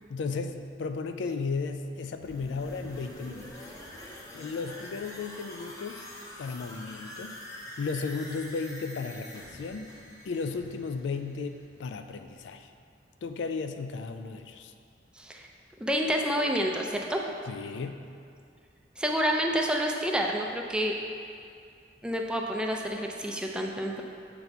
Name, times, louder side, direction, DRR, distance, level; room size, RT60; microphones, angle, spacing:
voice 1, 0.1-3.5 4.3-6.0 6.4-7.4 7.8-9.9 10.3-12.7 13.2-14.7 17.5-18.0, left 4 dB, 80° left, 8 dB, 0.4 m, -34 dB
sound 1, 2.2-11.9 12.2-12.3, left 1 dB, 20° left, 0.7 m, -45 dB
voice 2, 15.2-15.5 15.8-17.2 19.0-21.0 22.0-24.0, equal, 5° right, 1 dB, 0.4 m, -28 dB
6.8 x 4.0 x 4.6 m, 2.3 s
head